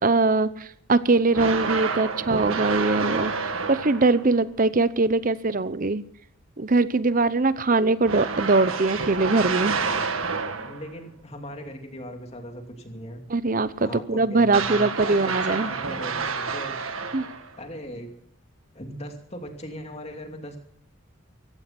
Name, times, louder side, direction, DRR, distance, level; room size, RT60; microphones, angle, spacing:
voice 1, 0.0-3.3 3.7-6.0 6.6-9.8 13.3-15.7 17.1-17.2, right 3 dB, 40° right, 15 dB, 0.8 m, -22 dB
sound 1, 1.3-4.3 8.0-10.9 14.5-17.6, right 5 dB, 90° right, 1.7 m, -29 dB
voice 2, 10.7-13.2 13.8-16.7 17.6-18.1 18.7-20.6, equal, 30° left, 4 dB, 2.7 m, -39 dB
15.5 x 14.5 x 6.0 m, 0.68 s
head